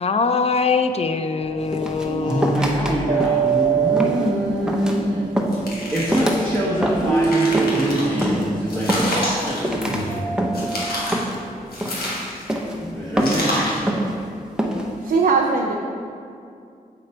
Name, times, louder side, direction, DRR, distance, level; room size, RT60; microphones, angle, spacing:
voice 1, 0.0-2.6, left 4 dB, 45° left, 9 dB, 0.4 m, -22 dB
sound 1, 1.4-11.8, right 7 dB, 55° right, 0.8 m, -26 dB
sound 2, 1.7-2.9 3.2-3.6 3.9-4.3 4.7-5.0 5.4-5.7 6.1-6.4 6.8-7.2 7.5-7.8 8.2-8.5 8.9-9.4 9.6-10.0 10.4-10.7 11.1-11.5 11.8-12.1 12.5-12.8 13.2-13.5 13.9-14.2 14.6-14.9, equal, 5° right, 0.8 m, -24 dB
voice 2, 2.2-5.2 5.9-10.2 12.8-13.7, equal, 10° left, -7 dB, 1.3 m, -24 dB
sound 3, 5.5-6.6 7.0-8.3 8.7-10.2 10.5-11.3 11.7-12.6 13.2-13.9, left 1 dB, 85° left, 1.3 m, -29 dB
voice 3, 15.0-15.7, right 4 dB, 80° right, -1 dB, 0.5 m, -19 dB
6.7 x 5.0 x 4.3 m, 2.4 s
cardioid pair, 60°, 15 cm